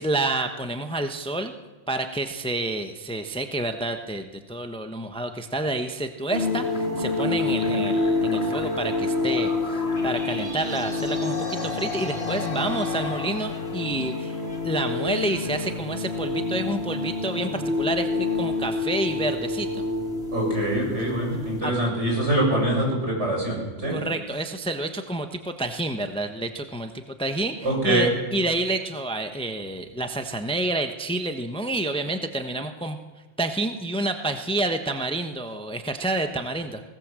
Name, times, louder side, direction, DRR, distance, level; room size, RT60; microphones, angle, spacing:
voice 1, 0.0-1.5 1.9-14.4 14.6-19.8 21.3-21.7 23.9-33.0 33.4-36.8, right 2 dB, 5° left, 6 dB, 1.0 m, -29 dB
sound 1, 6.3-21.6, left 3 dB, 50° left, 3.2 m, -28 dB
sound 2, 9.2-14.8 15.6-15.7 16.1-16.2 16.5-16.6 17.9-18.9, left 4 dB, 85° left, 3.1 m, -39 dB
voice 2, 20.3-24.0 27.6-28.1, right 1 dB, 65° right, -1 dB, 7.5 m, -24 dB
20.0 x 18.0 x 7.6 m, 1.3 s
omnidirectional pair, 1.3 m